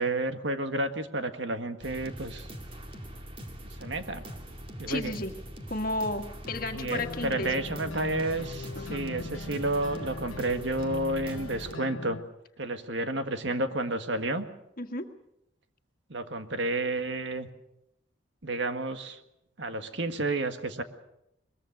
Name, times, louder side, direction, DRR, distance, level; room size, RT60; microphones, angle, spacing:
voice 1, 0.0-2.5 3.6-4.2 4.8-5.1 6.7-12.2 12.6-14.4 16.1-17.5 18.4-19.2 19.6-20.8, right 2 dB, 65° right, 8 dB, 1.7 m, -31 dB
sound 1, 1.8-11.8, equal, 30° right, 2.3 m, -43 dB
voice 2, 4.9-5.3 5.7-7.6 8.7-9.3 14.8-15.1, left 2 dB, 45° left, 5 dB, 1.8 m, -33 dB
sound 2, 6.5-12.2, left 3 dB, 90° left, 0.9 m, -41 dB
22.0 x 22.0 x 6.6 m, 0.82 s
head